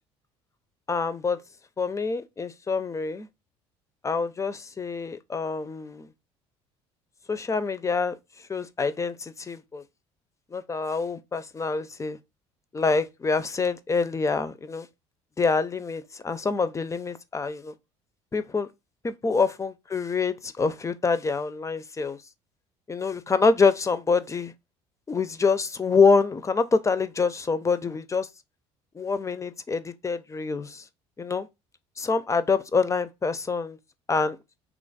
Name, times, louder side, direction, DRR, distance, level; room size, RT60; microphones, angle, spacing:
voice 1, 0.9-1.4 1.8-3.3 4.0-6.1 7.3-8.1 8.5-9.8 10.5-12.2 12.7-14.9 15.4-17.7 18.3-18.7 19.0-22.2 22.9-24.5 25.1-28.3 28.9-30.8 31.2-31.5 32.0-33.8 34.1-34.4, left 4 dB, 20° left, 0.4 m, -26 dB
3.0 x 2.4 x 3.9 m
hypercardioid pair, 65°, 15 cm